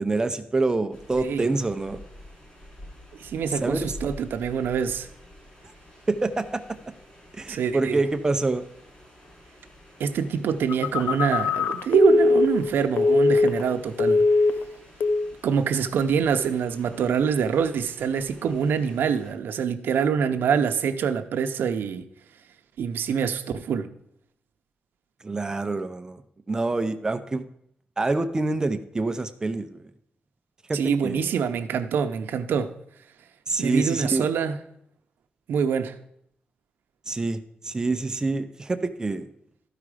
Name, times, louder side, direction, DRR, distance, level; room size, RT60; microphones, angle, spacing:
voice 1, 0.0-2.0 3.5-4.0 6.1-6.6 7.3-8.6 25.2-26.2 26.5-27.4 28.0-29.9 30.7-31.3 33.5-34.3 37.1-39.3, right 3 dB, 20° right, 0.5 m, -26 dB
sound 1, 0.9-19.3, left 1 dB, 25° left, 3.5 m, -48 dB
voice 2, 3.2-5.1 7.5-8.0 10.0-14.2 15.4-22.1 22.8-23.9 30.7-32.7 33.6-34.6 35.5-35.9, right 6 dB, 90° right, 0.7 m, -25 dB
Telephone, 10.7-13.7 14.0-14.7 15.0-15.3, left 3 dB, 65° left, 0.5 m, -21 dB
12.5 x 4.9 x 4.9 m
wide cardioid pair, 145°, 3 cm